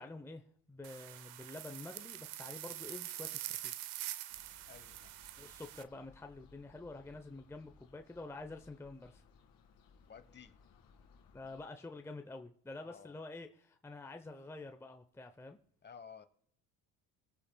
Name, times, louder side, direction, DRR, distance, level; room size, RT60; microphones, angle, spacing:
voice 1, 0.0-3.7 5.4-9.2 11.3-15.6, left 2 dB, 5° left, 5 dB, 0.8 m, -48 dB
sound 1, 0.8-5.8, right 15 dB, 90° right, 0.8 m, -45 dB
sound 2, 4.3-11.6, left 5 dB, 55° left, 2.2 m, -63 dB
voice 2, 4.7-5.1 10.1-10.5 12.8-13.2 15.8-16.3, left 6 dB, 25° left, 11 dB, 1.1 m, -54 dB
24.5 x 8.5 x 2.3 m, 0.68 s
supercardioid pair, 85°, 42 cm